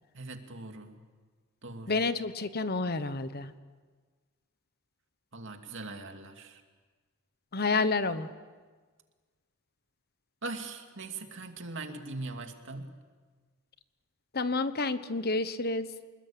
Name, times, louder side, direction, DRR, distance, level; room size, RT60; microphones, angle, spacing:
voice 1, 0.1-1.0 1.6-2.0 5.3-6.6 10.4-12.9, right 3 dB, 60° right, 5 dB, 2.5 m, -41 dB
voice 2, 1.9-3.5 7.5-8.3 14.3-15.9, left 3 dB, 45° left, 12 dB, 1.1 m, -29 dB
26.5 x 21.0 x 8.8 m, 1.4 s
head